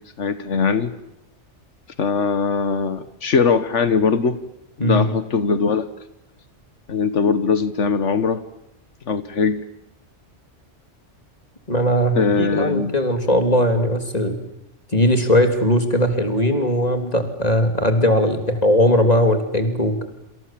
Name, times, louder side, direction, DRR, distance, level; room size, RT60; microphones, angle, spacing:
voice 1, 0.2-0.9 2.0-4.4 4.8-5.9 6.9-8.4 9.1-9.6 12.1-12.9, left 5 dB, 80° left, 13 dB, 1.6 m, -20 dB
voice 2, 11.7-14.4 14.9-20.0, equal, 35° left, 7 dB, 3.4 m, -19 dB
28.0 x 27.0 x 7.6 m, 0.82 s
omnidirectional pair, 1.2 m